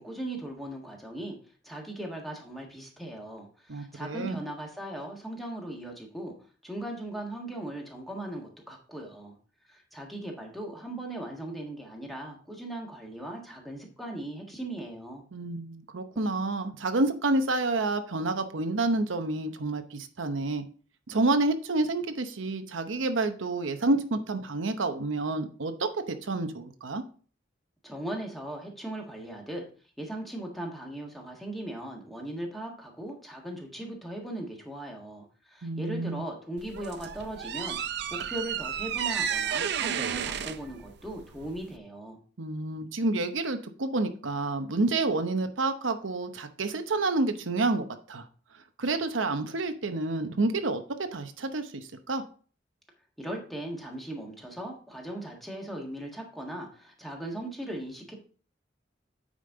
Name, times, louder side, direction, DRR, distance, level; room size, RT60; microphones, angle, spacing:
voice 1, 0.0-1.4 1.6-6.3 6.6-9.4 9.7-15.2 27.8-29.6 30.0-42.2 53.2-58.1, right 1 dB, ahead, 0 dB, 1.6 m, -38 dB
voice 2, 3.7-4.4 15.3-20.6 21.1-27.0 35.6-36.2 42.4-48.2 48.8-52.2, right 2 dB, 90° right, 8 dB, 0.8 m, -29 dB
sound 1, 36.6-41.8, right 8 dB, 60° right, 0.5 m, -32 dB
9.0 x 5.2 x 3.8 m, 0.41 s
head